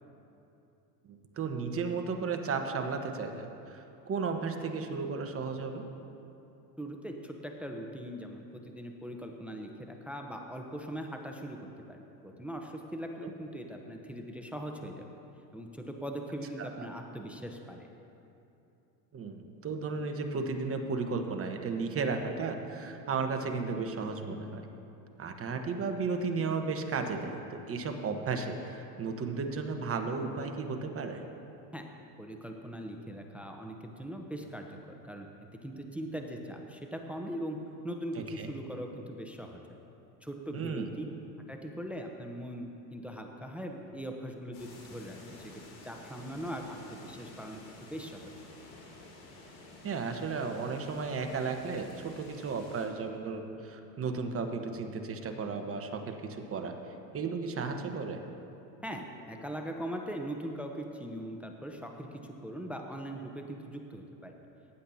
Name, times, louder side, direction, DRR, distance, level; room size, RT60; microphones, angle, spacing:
voice 1, 1.1-5.8 13.2-13.3 16.6-16.9 19.1-24.7 25.2-31.2 38.2-38.5 40.5-40.9 49.8-56.7 57.1-58.2, right 4 dB, 25° right, 5 dB, 1.1 m, -34 dB
voice 2, 6.8-15.1 15.5-17.9 31.7-31.9 32.2-34.8 35.0-35.3 35.6-37.6 37.8-39.8 40.2-41.0 41.5-47.6 47.9-48.3 58.8-64.3, equal, 5° right, 3 dB, 0.8 m, -40 dB
sound 1, 44.5-52.9, left 2 dB, 80° left, 2.9 m, -51 dB
18.0 x 10.0 x 2.8 m, 2.8 s
hypercardioid pair, 95°, 50 cm